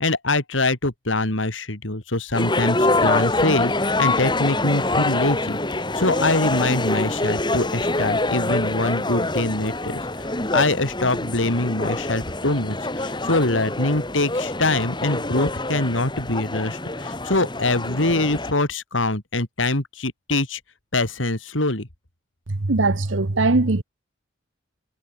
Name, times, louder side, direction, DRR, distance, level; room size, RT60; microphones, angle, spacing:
voice 1, 0.0-5.6 5.9-20.6 20.9-21.9, left 2 dB, 85° left, 3.3 m, -24 dB
sound 1, 2.3-18.5, left 2 dB, 25° left, 3.7 m, -25 dB
voice 2, 22.5-23.8, right 2 dB, 85° right, 1.2 m, -20 dB
head